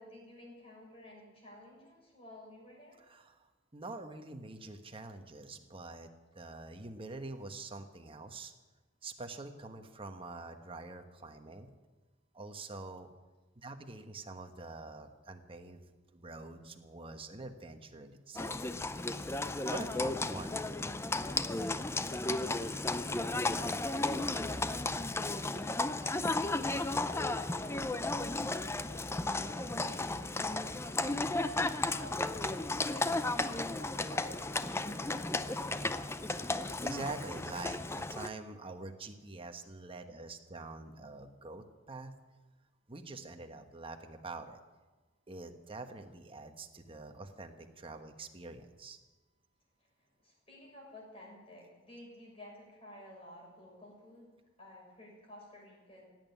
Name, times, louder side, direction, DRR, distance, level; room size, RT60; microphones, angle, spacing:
voice 1, 0.0-3.0 22.2-24.7 25.1-31.6 32.0-35.6 49.8-54.3 54.6-56.1, left 1 dB, 30° left, -2 dB, 6.5 m, -54 dB
voice 2, 3.1-6.1 6.3-8.5 9.0-11.7 12.3-13.1 13.5-15.8 16.1-19.2 19.7-20.6 35.9-42.1 42.9-44.6 45.3-49.0, right 3 dB, 25° right, 6 dB, 1.2 m, -46 dB
Livestock farm animals working animals, 18.3-38.3, left 2 dB, 15° left, 0.5 m, -34 dB
17.0 x 9.2 x 9.5 m, 1.2 s
head